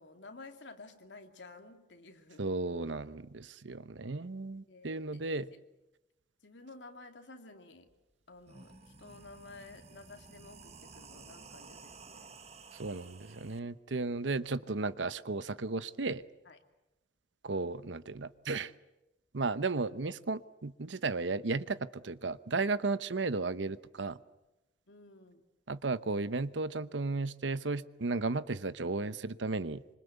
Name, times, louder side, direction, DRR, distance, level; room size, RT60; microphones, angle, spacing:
voice 1, 0.0-2.5 4.7-5.2 5.5-5.6 6.4-7.9 8.3-12.4 16.4-16.6 24.9-25.5, left 3 dB, 85° left, 5 dB, 2.6 m, -52 dB
voice 2, 2.4-5.5 12.8-16.2 17.4-18.7 19.3-24.2 25.7-30.0, right 3 dB, 90° right, 15 dB, 0.9 m, -34 dB
sound 1, 7.9-8.0 8.3-13.6, right 4 dB, 35° right, 1.3 m, -53 dB
26.0 x 25.0 x 8.2 m, 0.99 s
head